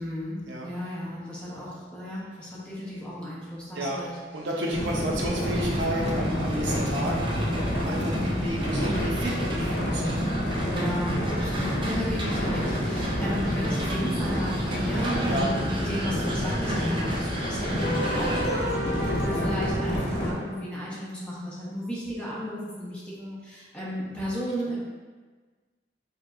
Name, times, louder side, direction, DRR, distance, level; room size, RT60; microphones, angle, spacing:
voice 1, 0.0-4.1 8.1-8.6 10.7-24.8, equal, 5° left, -8 dB, 1.0 m, -34 dB
voice 2, 3.7-10.0 15.3-15.5 18.8-19.2, right 1 dB, 90° right, -2 dB, 0.7 m, -32 dB
sound 1, 4.7-20.3, equal, 75° left, 1.2 m, -28 dB
sound 2, 5.5-18.5, right 1 dB, 30° right, 0.5 m, -37 dB
sound 3, 17.8-21.0, equal, 60° left, 0.8 m, -32 dB
5.1 x 2.8 x 2.5 m, 1.3 s
head